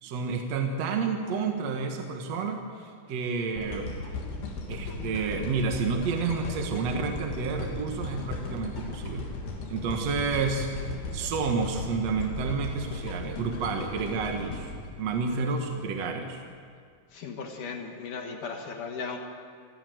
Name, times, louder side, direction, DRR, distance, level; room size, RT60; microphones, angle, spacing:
voice 1, 0.0-4.0 4.7-9.3 9.7-10.7 11.1-14.7 15.0-16.4, right 5 dB, 60° right, 3 dB, 1.9 m, -30 dB
sound 1, 3.6-15.8 16.3-16.4, left 3 dB, 80° left, 4.8 m, -36 dB
voice 2, 17.1-19.2, left 5 dB, 60° left, 3 dB, 2.7 m, -36 dB
27.5 x 14.5 x 7.9 m, 2.1 s
omnidirectional pair, 4.7 m